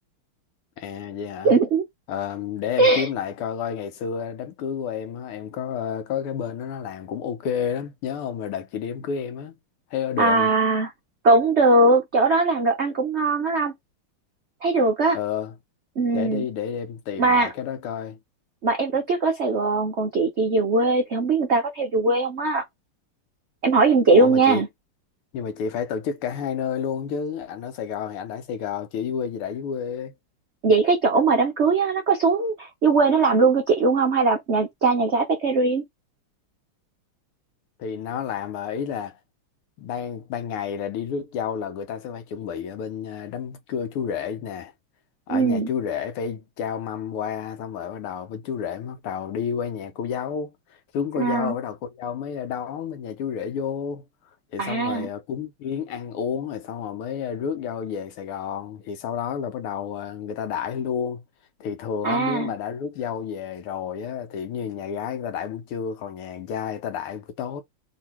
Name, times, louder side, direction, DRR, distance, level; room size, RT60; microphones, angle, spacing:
voice 1, 0.8-1.5 2.1-9.5 9.9-10.5 15.1-15.5 16.1-18.2 24.1-24.6 25.3-30.1 37.8-39.2 39.8-44.7 45.3-50.5 50.9-54.1 54.5-61.2 61.6-67.6, left 7 dB, 85° left, 1.8 m, -30 dB
voice 2, 1.4-1.8 2.8-3.1 10.2-10.9 11.2-13.7 14.6-15.2 16.0-16.4 17.2-17.5 18.6-22.6 23.6-24.7 30.6-35.8 45.3-45.7 51.2-51.5 54.6-55.1 62.0-62.5, right 3 dB, 75° right, 0.6 m, -20 dB
3.7 x 2.9 x 4.3 m
omnidirectional pair, 2.4 m